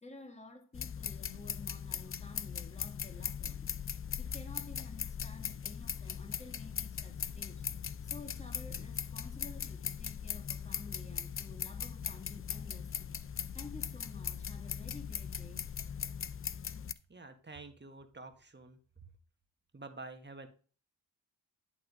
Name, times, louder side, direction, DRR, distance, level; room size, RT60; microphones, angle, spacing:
voice 1, 0.0-3.7 4.2-7.6 8.0-13.1 13.5-15.8, left 3 dB, 15° left, 1.8 m, -52 dB
sound 1, 0.7-16.9, left 7 dB, 30° left, 0.5 m, -40 dB
voice 2, 17.1-19.0 19.7-20.5, right 3 dB, 25° right, 1.6 m, -49 dB
11.0 x 3.6 x 4.9 m
supercardioid pair, 50°, 43 cm